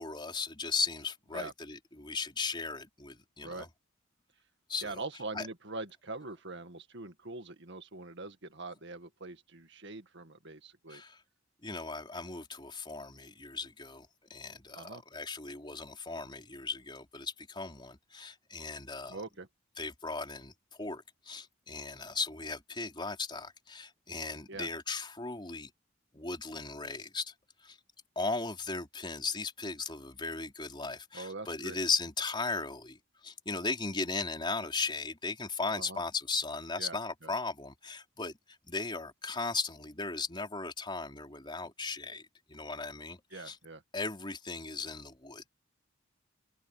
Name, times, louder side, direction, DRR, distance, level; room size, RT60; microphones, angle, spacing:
voice 1, 0.0-3.7 4.7-5.0 5.3-5.5 10.9-11.2 11.6-19.2 19.8-25.7 26.1-27.3 27.6-27.8 28.2-38.3 38.7-43.6 43.9-45.5, left 4 dB, 25° left, 4.2 m, -37 dB
voice 2, 4.8-11.0 14.7-15.0 19.1-19.5 24.5-24.7 31.1-31.8 35.7-36.0 36.8-37.3 43.3-43.8, right 3 dB, 60° right, 1.9 m, -43 dB
head